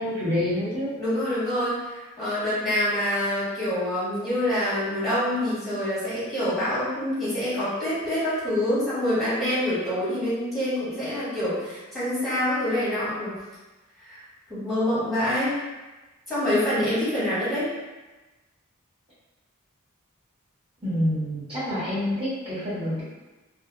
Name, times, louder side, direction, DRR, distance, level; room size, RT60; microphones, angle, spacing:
voice 1, 0.0-0.9 20.8-23.0, left 1 dB, 25° right, -12 dB, 1.2 m, -27 dB
voice 2, 1.0-13.4 14.0-14.2 14.5-15.6 16.3-17.7, left 1 dB, ahead, -13 dB, 1.4 m, -26 dB
2.6 x 2.4 x 2.4 m, 1.2 s
head